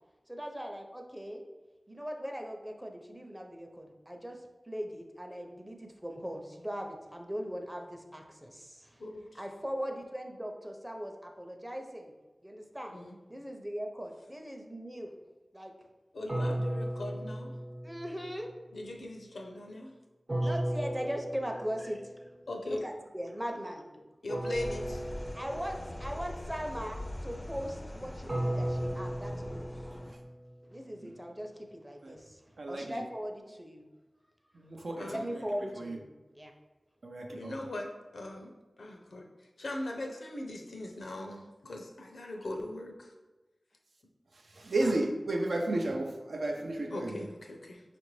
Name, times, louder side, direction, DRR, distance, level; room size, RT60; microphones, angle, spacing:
voice 1, 0.3-1.5 1.9-9.0 9.3-12.1 12.4-13.0 13.3-15.1 15.5-15.7 17.8-18.5 20.4-22.3 22.7-23.8 25.3-29.9 30.7-33.8 34.8-36.1 36.3-36.5 42.2-42.3, equal, 15° right, 3 dB, 0.6 m, -40 dB
voice 2, 9.0-9.4 12.9-13.2 16.1-17.5 18.7-19.9 22.5-22.8 24.2-25.0 35.0-35.2 37.3-38.5 38.8-39.3 39.6-43.1 44.8-44.9 46.9-47.8, left 1 dB, 85° left, 1 dB, 0.5 m, -40 dB
sound 1, 16.3-18.3 20.3-22.1 24.3-26.1 28.3-30.5, right 1 dB, 55° right, 0.9 m, -35 dB
sound 2, 24.5-30.1, left 1 dB, 30° left, 0.4 m, -42 dB
voice 3, 32.6-33.0 34.5-35.1 35.8-36.0 37.0-37.5 44.5-47.3, right 2 dB, 80° right, 2 dB, 0.5 m, -33 dB
5.1 x 2.5 x 3.1 m, 1.1 s
cardioid pair, 45°, 0 cm